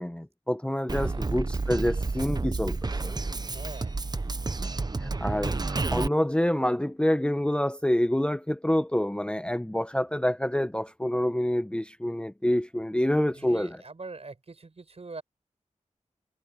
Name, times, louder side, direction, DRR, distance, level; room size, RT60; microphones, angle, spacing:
voice 1, 0.0-2.8 3.0-3.1 5.0-5.5 5.9-13.8, left 1 dB, 10° left, 0.8 m, -27 dB
Drum kit, 0.9-6.1, right 3 dB, 35° right, 0.7 m, -30 dB
voice 2, 3.5-4.0 4.9-5.5 13.3-15.2, right 3 dB, 55° right, 5.6 m, -44 dB
wide cardioid pair, 85°, 13 cm